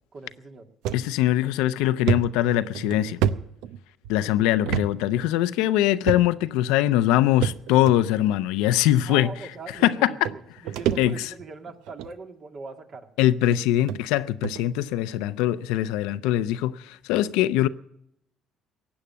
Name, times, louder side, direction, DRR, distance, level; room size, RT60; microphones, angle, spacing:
voice 1, 0.1-0.7 4.4-4.6 9.0-13.1, right 4 dB, 50° right, 2.1 m, -41 dB
sound 1, 0.8-1.0 1.5-1.6 2.1-4.1 4.6-4.9 5.2-5.3 6.0-6.5 7.4-7.9 8.8-8.9 9.9-10.0 10.2-11.4 11.9-12.1 12.9-13.0 13.5-13.6 13.9-14.0 14.4-14.6, right 9 dB, 75° right, 0.6 m, -27 dB
voice 2, 0.9-3.2 4.1-9.3 9.8-10.1 11.0-11.3 13.2-17.7, left 13 dB, 80° left, 0.6 m, -22 dB
15.5 x 9.0 x 8.5 m
hypercardioid pair, 65°, 0 cm